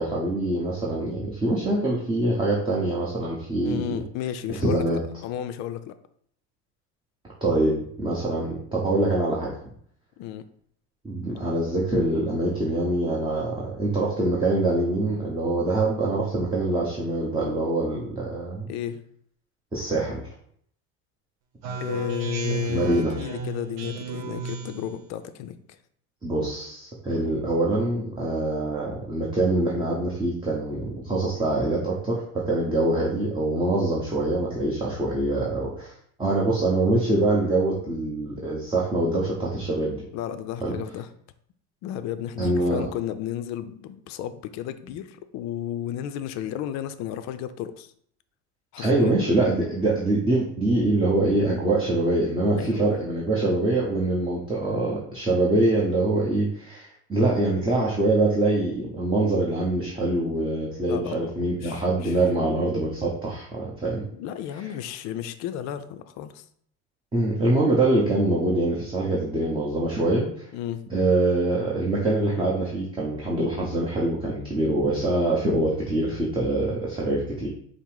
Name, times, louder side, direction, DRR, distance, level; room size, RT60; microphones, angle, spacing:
voice 1, 0.0-3.9 4.6-5.0 7.4-9.5 11.0-18.7 19.7-20.2 22.7-23.1 26.2-35.9 36.2-40.0 40.6-40.7 42.4-42.9 48.8-64.0 67.1-70.5 70.9-77.5, right 2 dB, 15° right, -4 dB, 0.9 m, -24 dB
voice 2, 3.6-6.0 10.2-10.5 18.7-19.0 21.8-25.8 40.1-41.1 41.8-47.9 48.7-49.1 52.6-52.9 60.9-62.2 64.1-66.5 70.5-70.8, left 10 dB, 55° left, 11 dB, 0.5 m, -33 dB
Speech synthesizer, 21.6-25.0, right 4 dB, 65° right, 0.9 m, -33 dB
5.3 x 2.0 x 4.7 m, 0.64 s
supercardioid pair, 110°, 33 cm